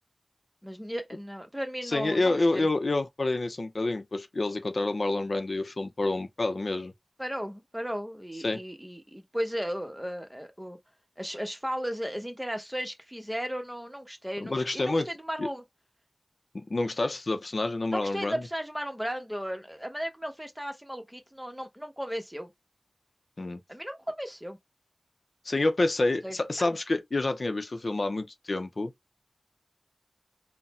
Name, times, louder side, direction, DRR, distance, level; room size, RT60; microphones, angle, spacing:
voice 1, 0.6-2.7 7.2-10.8 11.2-15.6 17.9-22.5 23.7-24.6 26.2-26.7, equal, 5° right, 1.0 m, -35 dB
voice 2, 1.8-6.9 8.4-8.6 14.4-15.1 15.4-15.5 16.5-18.4 23.4-23.6 25.4-28.9, left 2 dB, 60° left, 0.6 m, -28 dB
4.0 x 2.1 x 4.2 m
wide cardioid pair, 65°, 0 cm